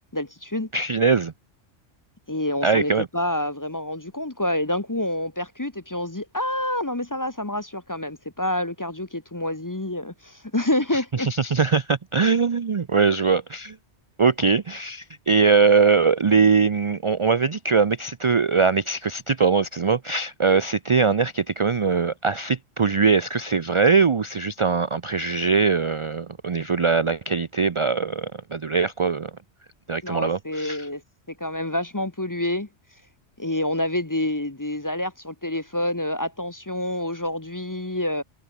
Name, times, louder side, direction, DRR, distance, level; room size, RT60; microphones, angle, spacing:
voice 1, 0.1-0.7 2.3-11.3 30.0-31.0 31.3-32.7 33.4-38.2, left 1 dB, 20° left, 0.9 m, -27 dB
voice 2, 0.7-1.3 2.6-3.1 11.2-13.8 14.2-29.3 29.9-30.9, right 5 dB, 40° right, 0.5 m, -21 dB
omnidirectional pair, 1.2 m